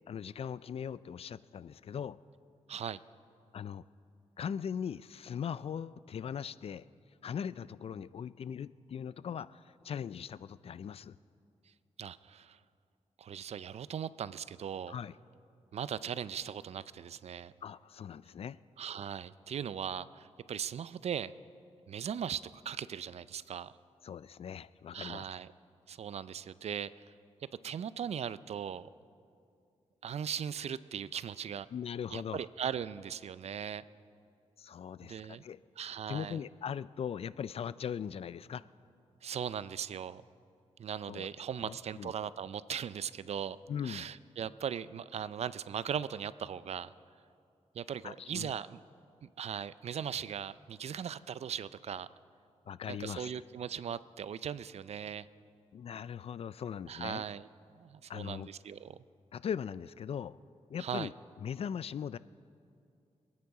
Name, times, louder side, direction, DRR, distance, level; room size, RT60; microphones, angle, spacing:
voice 1, 0.1-2.2 3.5-3.8 4.4-6.8 7.2-11.2 14.9-15.1 17.6-18.6 24.0-25.2 31.7-32.4 34.6-35.6 36.1-38.6 41.1-41.3 41.6-42.1 43.7-44.1 48.0-48.5 52.7-53.3 55.7-57.2 58.1-58.5 59.3-60.4 60.7-61.1 61.4-62.2, left 8 dB, 60° left, 18 dB, 0.4 m, -40 dB
voice 2, 2.7-3.0 12.0-12.6 13.2-15.0 15.7-17.5 18.8-21.3 21.9-23.7 24.9-25.5 25.9-27.0 27.6-28.9 30.0-31.7 32.1-33.8 35.0-35.4 35.8-36.4 39.2-40.2 40.8-43.6 43.8-46.9 47.7-48.8 49.2-52.1 52.9-55.3 56.9-57.5 57.8-59.0 60.8-61.1, right 8 dB, 65° right, 16 dB, 0.4 m, -39 dB
26.0 x 9.6 x 4.8 m, 2.5 s
cardioid pair, 85°, 12 cm